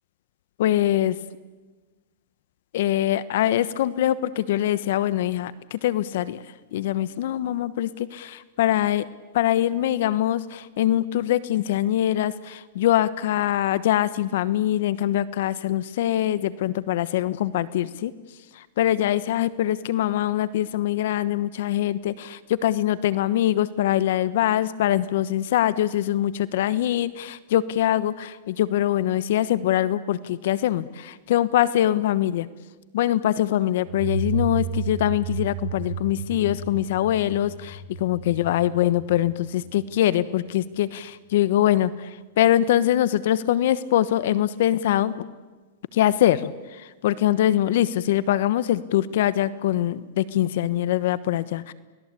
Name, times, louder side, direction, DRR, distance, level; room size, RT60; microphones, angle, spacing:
voice 1, 0.6-1.2 2.7-6.4 6.7-9.1 9.3-18.1 18.6-32.5 32.9-45.2 45.9-51.7, left 12 dB, 65° left, 16 dB, 1.1 m, -23 dB
sound 1, 33.8-40.4, right 5 dB, 65° right, 7.5 m, -33 dB
30.0 x 19.5 x 8.5 m, 1.3 s
hypercardioid pair, 130°, 0 cm